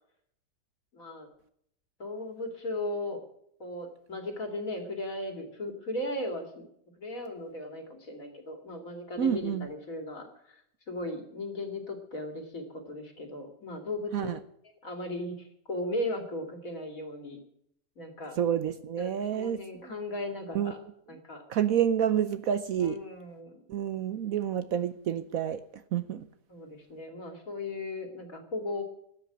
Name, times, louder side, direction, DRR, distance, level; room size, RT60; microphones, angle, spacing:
voice 1, 0.9-1.3 2.0-3.2 3.6-6.7 6.9-14.3 14.8-17.4 18.0-18.4 19.0-20.8 21.1-21.4 22.8-23.6 26.5-28.8, left 1 dB, 50° left, 2.9 m, -37 dB
voice 2, 9.2-9.7 14.1-14.4 18.4-19.9 20.5-20.7 21.5-23.0 23.7-25.6 25.9-26.2, right 9 dB, 65° right, 1.0 m, -29 dB
12.5 x 8.3 x 9.9 m
omnidirectional pair, 1.8 m